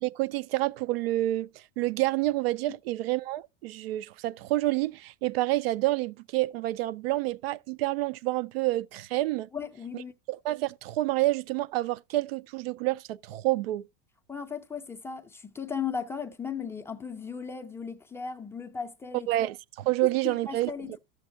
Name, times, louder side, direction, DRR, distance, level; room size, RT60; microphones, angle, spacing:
voice 1, 0.0-1.5 1.8-9.5 10.3-13.9 19.3-20.7, right 17 dB, 85° right, 0.4 m, -28 dB
voice 2, 9.5-10.1 14.3-19.3 20.2-21.0, left 6 dB, 10° left, 0.4 m, -36 dB
12.0 x 7.1 x 2.6 m
supercardioid pair, 145°, 29 cm